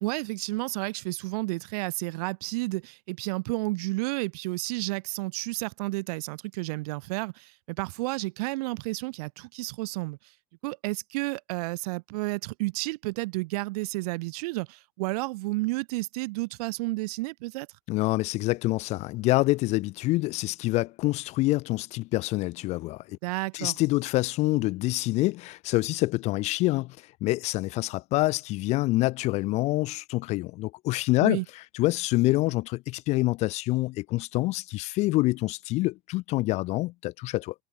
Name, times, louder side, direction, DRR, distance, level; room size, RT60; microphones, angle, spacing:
voice 1, 0.0-10.2 10.6-17.7 23.2-23.7 31.2-31.4, right 23 dB, 65° right, 0.9 m, -31 dB
voice 2, 17.9-23.2 23.5-37.5, left 20 dB, 35° left, 0.3 m, -26 dB
supercardioid pair, 150°, 21 cm